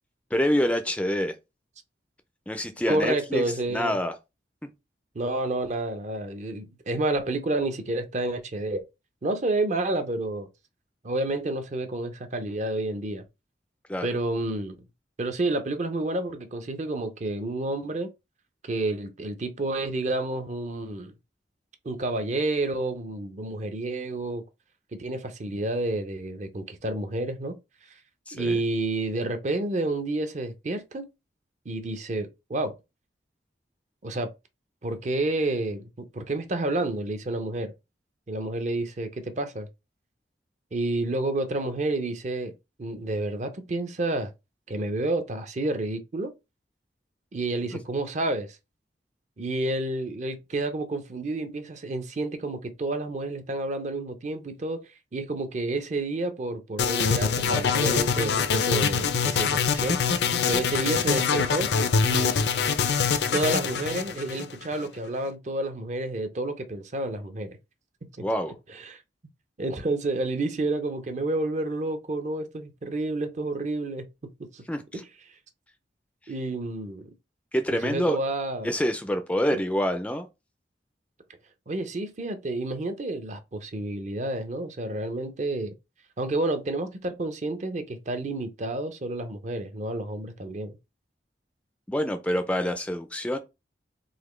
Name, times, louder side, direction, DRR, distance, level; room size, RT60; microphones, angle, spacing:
voice 1, 0.3-1.3 2.5-4.2 13.9-14.1 28.3-28.6 68.2-68.6 74.7-75.0 77.5-78.2 78.6-80.3 91.9-93.4, equal, 5° left, 0.3 m, -26 dB
voice 2, 2.9-3.9 5.1-8.8 9.2-10.5 11.0-13.2 14.0-14.8 15.2-18.1 18.6-21.1 21.8-24.4 24.9-27.6 28.3-31.1 31.7-32.7 34.0-34.3 34.8-35.9 36.1-37.7 38.3-39.7 40.7-42.5 42.8-44.3 44.7-46.3 47.3-48.6 49.4-54.8 55.1-61.7 62.0-62.4 63.3-67.5 68.7-69.0 69.6-74.6 74.9-75.0 76.3-77.1 77.7-78.7 79.4-79.6 81.7-85.7 86.2-90.8, right 2 dB, 40° right, 0.5 m, -30 dB
sound 1, 56.8-64.9, left 6 dB, 65° left, 0.4 m, -24 dB
4.0 x 2.8 x 3.1 m
head